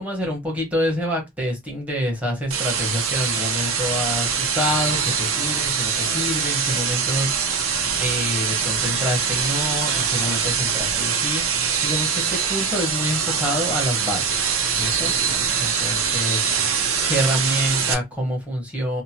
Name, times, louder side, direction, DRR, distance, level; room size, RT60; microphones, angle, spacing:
voice 1, 0.0-7.4 8.0-16.5 17.1-19.0, equal, 5° right, 1.2 m, -27 dB
sound 1, 2.5-17.9, right 6 dB, 85° right, 0.7 m, -23 dB
2.9 x 2.2 x 2.8 m
head